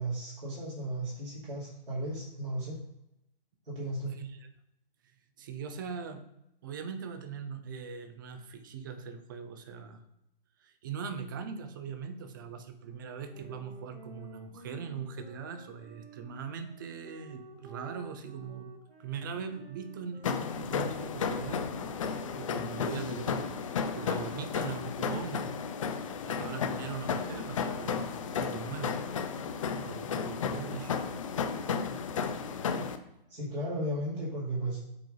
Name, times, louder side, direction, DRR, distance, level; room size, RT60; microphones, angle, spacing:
voice 1, 0.0-2.8 3.6-4.1 33.3-34.8, right 1 dB, 70° right, -8 dB, 2.5 m, -35 dB
voice 2, 4.1-4.5 5.4-6.2 6.6-10.0 10.6-18.7 19.0-21.7 22.0-25.5 26.3-29.0 29.8-31.2, right 6 dB, 20° right, 9 dB, 0.5 m, -41 dB
sound 1, 13.3-22.9, right 3 dB, 90° right, 1.9 m, -52 dB
sound 2, 20.2-33.0, left 6 dB, 35° left, 0.6 m, -33 dB
7.7 x 3.7 x 3.8 m, 0.82 s
figure-of-eight pair, 135°, 29 cm